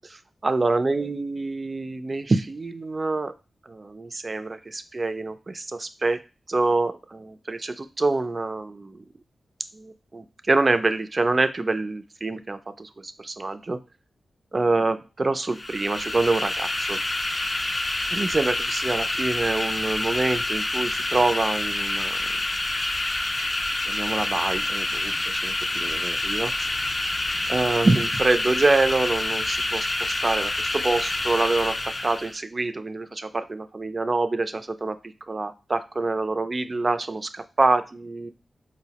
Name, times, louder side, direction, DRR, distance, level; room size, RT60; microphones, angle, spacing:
voice 1, 0.4-3.3 3.7-6.2 6.5-9.0 9.7-13.8 14.5-17.0 18.1-22.3 23.9-26.7 27.5-35.0 35.3-38.3, right 3 dB, 45° right, 10 dB, 0.3 m, -26 dB
sound 1, 15.5-32.4, left 2 dB, 40° left, 0.4 m, -27 dB
4.3 x 2.0 x 2.8 m, 0.32 s
cardioid pair, 45°, 0 cm